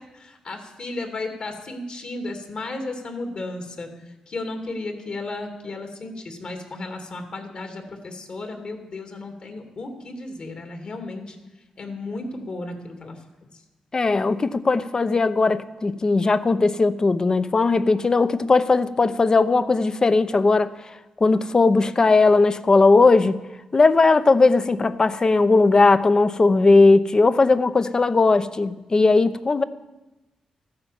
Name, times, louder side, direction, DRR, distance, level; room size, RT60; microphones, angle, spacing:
voice 1, 0.1-11.4 11.8-13.2 13.5-13.6, left 2 dB, 55° left, 5 dB, 2.7 m, -34 dB
voice 2, 13.9-20.7 21.2-23.4 23.7-29.6, left 3 dB, 35° left, 13 dB, 0.8 m, -18 dB
14.0 x 9.8 x 7.4 m, 1.0 s
cardioid pair, 75°, 2 cm